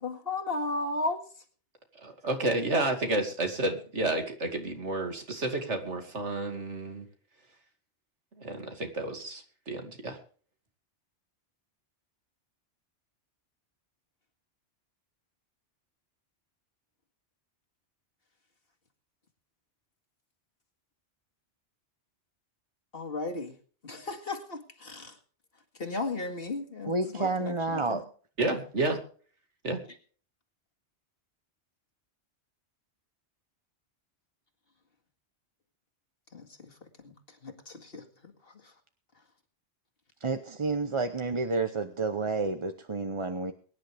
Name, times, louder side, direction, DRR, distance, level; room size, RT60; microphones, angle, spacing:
voice 1, 0.0-1.2 22.9-23.5 23.8-25.2 25.8-28.0 36.3-36.7 37.0-37.1 37.4-38.0 38.6-38.7, left 3 dB, 55° left, 4 dB, 2.2 m, -35 dB
voice 2, 2.0-7.0 8.4-10.2 28.4-29.0 29.6-29.8, right 2 dB, 80° right, 4 dB, 2.8 m, -31 dB
voice 3, 26.9-28.0 40.2-43.5, right 3 dB, 30° right, 7 dB, 0.8 m, -30 dB
23.0 x 10.5 x 3.4 m, 0.43 s
omnidirectional pair, 1.2 m